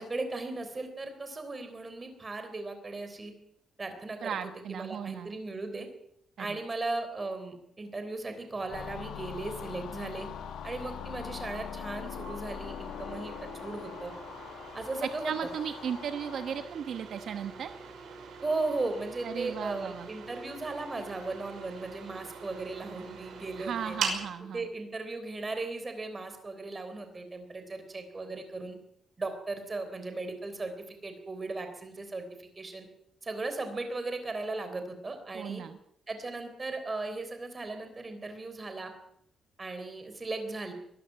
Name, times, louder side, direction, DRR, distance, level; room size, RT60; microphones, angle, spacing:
voice 1, 0.0-3.3 3.8-4.4 4.7-5.9 6.4-10.3 10.6-13.4 13.6-14.1 14.7-15.5 18.4-23.9 24.5-28.8 29.2-32.9 33.2-35.6 36.1-38.9 39.6-40.7, right 3 dB, 20° right, 7 dB, 3.5 m, -37 dB
voice 2, 4.2-5.4 6.4-6.6 15.2-17.7 19.2-20.1 23.6-24.7 35.3-35.8, right 8 dB, 60° right, 9 dB, 1.0 m, -36 dB
sound 1, 8.5-24.3, right 5 dB, 80° right, 5.8 m, -43 dB
sound 2, 8.7-16.7, left 8 dB, 75° left, 1.5 m, -42 dB
22.5 x 13.0 x 9.0 m, 0.73 s
wide cardioid pair, 170°, 0 cm